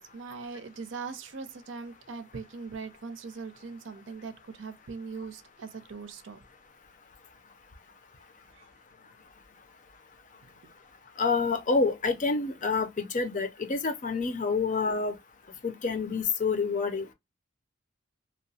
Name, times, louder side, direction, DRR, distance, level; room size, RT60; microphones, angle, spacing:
voice 1, 0.0-6.4 8.5-8.7, right 4 dB, 80° right, 0.5 m, -41 dB
voice 2, 11.2-15.2 15.6-17.1, left 4 dB, 40° left, 0.5 m, -28 dB
2.8 x 2.0 x 2.6 m
head